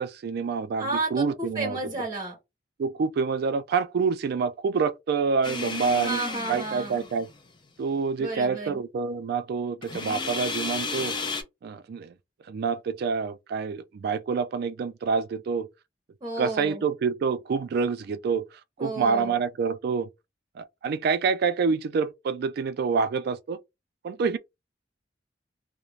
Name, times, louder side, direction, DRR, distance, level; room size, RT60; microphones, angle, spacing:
voice 1, 0.0-1.8 2.8-6.2 6.5-7.3 7.8-11.1 11.6-12.1 12.5-15.7 16.4-18.4 18.8-20.1 20.6-23.6 24.0-24.4, right 5 dB, 60° right, 0.3 m, -27 dB
voice 2, 0.8-2.4 6.0-7.1 8.2-8.8 16.2-16.8 18.8-19.3, right 2 dB, 20° right, 0.7 m, -32 dB
sound 1, 5.4-7.5 9.8-11.4, left 4 dB, 25° left, 0.5 m, -33 dB
2.4 x 2.1 x 3.1 m
head